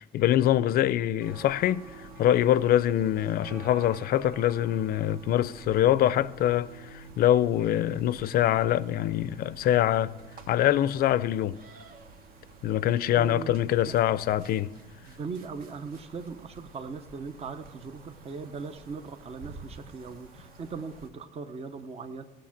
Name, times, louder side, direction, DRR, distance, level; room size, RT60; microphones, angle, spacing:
voice 1, 0.0-10.1 10.5-11.6 12.6-14.7, left 12 dB, 60° left, 0.5 m, -24 dB
sound 1, 1.2-21.1, right 3 dB, 60° right, 1.2 m, -49 dB
voice 2, 13.1-13.9 15.1-22.2, right 5 dB, 40° right, 0.8 m, -39 dB
15.0 x 6.4 x 7.2 m
cardioid pair, 110°, 17 cm